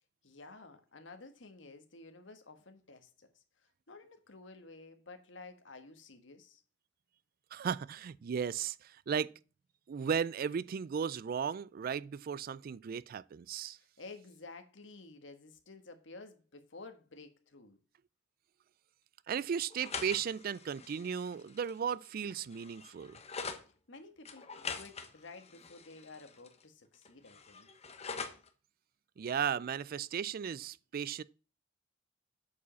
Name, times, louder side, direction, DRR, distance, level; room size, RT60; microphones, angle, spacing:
voice 1, 0.2-6.6 13.7-17.8 23.9-24.5 24.7-27.7, left 3 dB, 70° left, 1.5 m, -52 dB
voice 2, 7.5-9.3 9.9-13.8 19.3-23.2 29.2-31.2, right 7 dB, 50° right, 0.3 m, -35 dB
sound 1, 19.7-23.6 24.3-26.6 26.9-28.5, left 5 dB, 35° left, 1.2 m, -44 dB
8.4 x 5.1 x 6.9 m
head